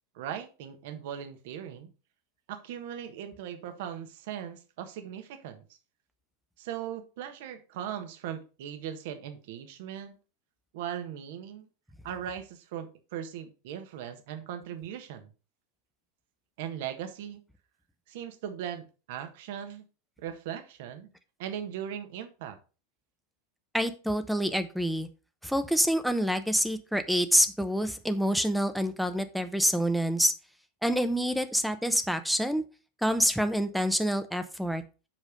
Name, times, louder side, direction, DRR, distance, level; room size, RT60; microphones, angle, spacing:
voice 1, 0.1-1.9 2.5-5.6 6.6-10.2 10.7-11.7 12.0-15.3 16.6-17.4 18.1-19.8 20.2-21.1 21.4-22.6, right 9 dB, 65° right, 8 dB, 1.4 m, -39 dB
voice 2, 23.7-25.1 25.4-30.3 30.8-32.6 33.0-34.8, equal, ahead, 9 dB, 0.9 m, -27 dB
7.6 x 4.9 x 5.2 m, 0.34 s
hypercardioid pair, 95°, 0 cm